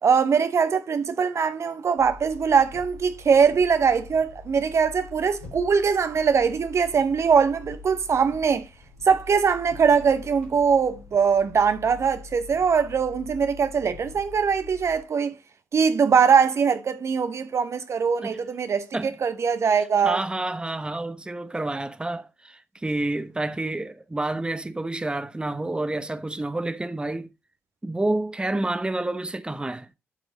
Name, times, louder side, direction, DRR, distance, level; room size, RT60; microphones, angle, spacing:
voice 1, 0.0-8.7 9.1-15.4 15.7-18.9 19.2-20.2, right 6 dB, 45° right, 0.8 m, -22 dB
sound 1, 2.0-15.0, left 5 dB, 90° left, 1.8 m, -44 dB
voice 2, 19.8-27.3 27.8-29.9, right 2 dB, 15° right, 0.9 m, -29 dB
11.5 x 4.7 x 4.0 m
figure-of-eight pair, 40°, 7 cm